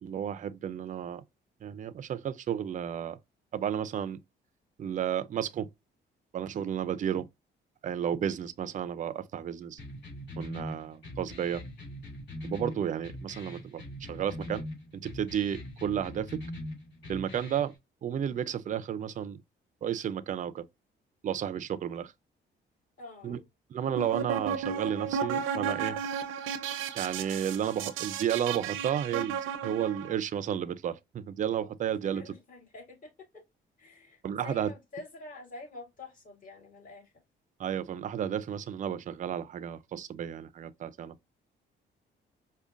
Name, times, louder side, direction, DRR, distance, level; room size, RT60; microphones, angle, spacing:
voice 1, 0.0-1.2 1.6-3.2 3.5-4.2 4.8-5.7 6.3-7.3 7.8-9.8 10.4-11.6 12.4-14.6 14.9-16.4 17.1-17.7 18.0-19.4 19.8-20.6 21.2-22.1 23.2-23.4 23.7-26.0 26.9-32.3 34.2-34.7 37.6-41.1, right 9 dB, 40° right, 0.4 m, -32 dB
sound 1, 9.8-17.7, left 1 dB, 60° left, 2.2 m, -42 dB
voice 2, 23.0-23.5 32.0-33.4 33.8-37.1, left 2 dB, 40° left, 2.1 m, -47 dB
sound 2, 23.8-30.1, right 7 dB, 90° right, 0.5 m, -33 dB
4.9 x 2.2 x 2.4 m
cardioid pair, 90°, 20 cm